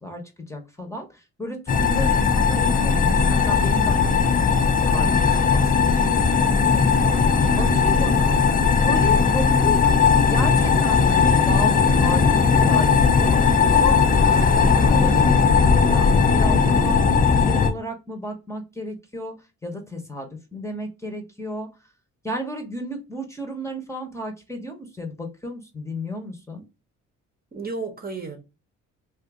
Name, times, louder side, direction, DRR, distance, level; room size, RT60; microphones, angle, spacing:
voice 1, 0.0-4.5 4.8-8.3 8.8-10.0 10.3-13.4 13.7-19.3 19.6-21.7 22.2-26.6, left 1 dB, 10° left, 0.9 m, -33 dB
sound 1, 1.7-17.7, left 5 dB, 30° left, 0.5 m, -18 dB
voice 2, 27.5-28.4, right 4 dB, 30° right, 0.9 m, -33 dB
2.6 x 2.5 x 3.5 m
cardioid pair, 90°, 30 cm